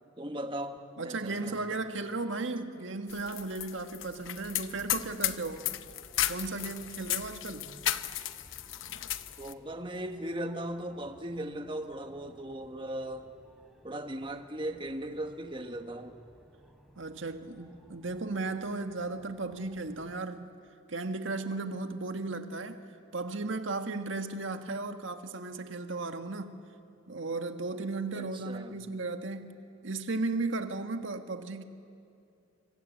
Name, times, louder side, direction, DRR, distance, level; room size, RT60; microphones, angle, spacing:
voice 1, 0.2-1.9 9.4-13.3 13.8-16.2 28.1-28.7, right 1 dB, 25° right, 1.4 m, -38 dB
voice 2, 1.0-5.7 6.3-7.7 17.0-20.5 20.9-22.8 23.1-26.5 27.1-29.6 29.8-31.6, right 3 dB, 85° right, 1.6 m, -35 dB
sound 1, 3.1-9.5, left 12 dB, 90° left, 0.8 m, -34 dB
sound 2, 4.7-20.1, equal, ahead, 3.4 m, -60 dB
27.0 x 24.5 x 8.5 m
head